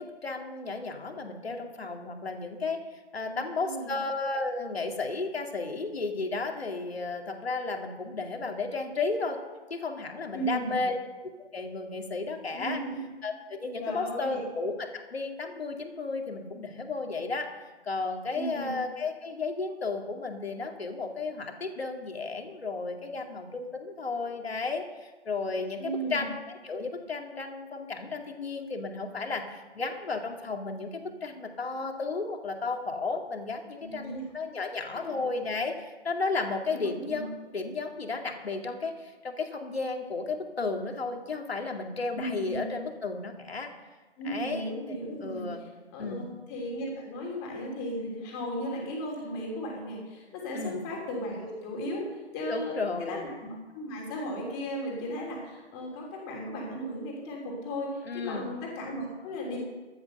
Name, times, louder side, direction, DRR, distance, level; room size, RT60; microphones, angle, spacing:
voice 1, 0.0-2.8 3.1-9.4 9.7-10.9 11.5-12.8 13.2-17.5 17.8-43.7 44.2-45.7 46.0-46.3 50.5-50.8 52.5-53.2 58.0-58.5, left 3 dB, 60° left, 3 dB, 2.4 m, -33 dB
voice 2, 3.3-3.9 10.3-10.8 12.5-13.0 13.8-14.4 18.3-18.7 25.8-26.3 33.8-34.2 34.9-35.2 36.7-37.2 42.1-42.6 44.2-45.5 45.9-59.6, equal, 15° left, -1 dB, 3.1 m, -36 dB
14.5 x 10.5 x 6.7 m, 1.2 s
figure-of-eight pair, 150°, 34 cm